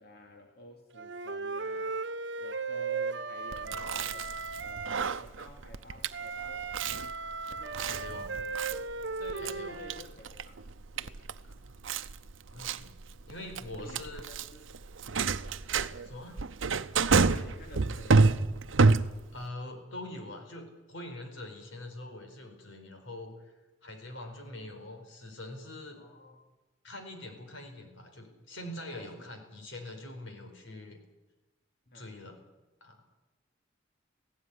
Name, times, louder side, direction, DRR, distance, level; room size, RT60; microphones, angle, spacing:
voice 1, 0.0-2.0 2.4-6.7 7.5-8.5 9.2-10.6 10.9-11.2 13.8-14.7 17.3-18.3 26.0-26.5 28.9-29.4 31.9-32.1, equal, 55° left, 2 dB, 2.5 m, -50 dB
Wind instrument woodwind instrument, 0.9-5.1 6.1-10.0, right 4 dB, 65° right, 1.0 m, -36 dB
Chewing mastication, 3.5-19.4, right 4 dB, 90° right, 0.8 m, -29 dB
voice 2, 7.8-8.4 9.4-9.8 11.4-11.8 12.5-14.3 16.0-16.4 19.3-26.0 26.8-31.0 31.9-32.4 32.8-33.0, left 1 dB, 85° left, 5 dB, 4.7 m, -44 dB
18.0 x 16.0 x 9.8 m, 1.1 s
head